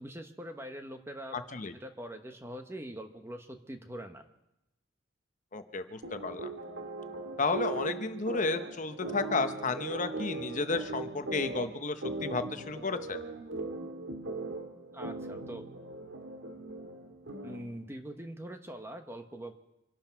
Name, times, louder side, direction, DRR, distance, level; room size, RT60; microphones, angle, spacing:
voice 1, 0.0-1.4 1.8-4.2 14.9-15.7 17.4-19.6, right 1 dB, 15° right, 6 dB, 1.1 m, -43 dB
voice 2, 1.3-1.7 5.5-6.5 7.4-13.2, left 3 dB, 40° left, 9 dB, 0.9 m, -32 dB
sound 1, 6.0-17.8, right 2 dB, 80° right, 1.9 m, -39 dB
26.0 x 12.0 x 4.5 m, 0.89 s
head